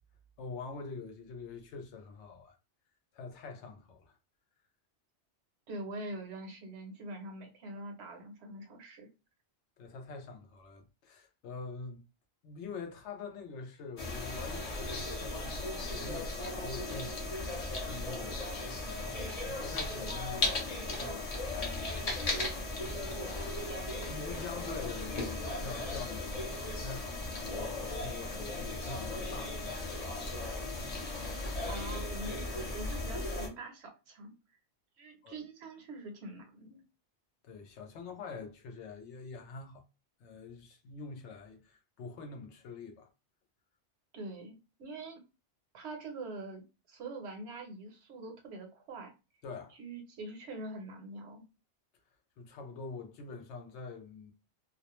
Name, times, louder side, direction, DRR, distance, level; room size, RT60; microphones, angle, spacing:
voice 1, 0.4-2.6 3.1-4.2 9.8-12.1 12.4-18.4 18.8-22.1 22.9-23.5 24.0-29.9 35.2-35.4 37.4-39.8 40.2-43.1 49.4-49.8 52.4-54.3, left 4 dB, 80° left, 0.9 m, -45 dB
voice 2, 5.7-9.1 31.7-34.3 35.0-36.8 44.1-45.2 45.7-49.1 49.8-51.5, right 2 dB, 70° right, 0.9 m, -44 dB
sound 1, 14.0-33.5, left 2 dB, 45° left, 0.6 m, -36 dB
2.4 x 2.0 x 2.9 m
omnidirectional pair, 1.2 m